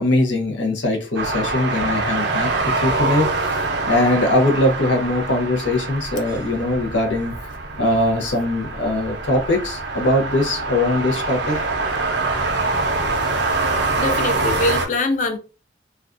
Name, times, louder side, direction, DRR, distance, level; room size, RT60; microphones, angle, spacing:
voice 1, 0.0-3.6 3.9-7.3 7.8-11.6, left 1 dB, 75° left, 0.7 m, -21 dB
sound 1, 1.2-14.9, right 3 dB, 65° right, 0.5 m, -24 dB
voice 2, 13.9-15.4, left 2 dB, 40° left, 0.4 m, -23 dB
2.4 x 2.2 x 2.4 m
head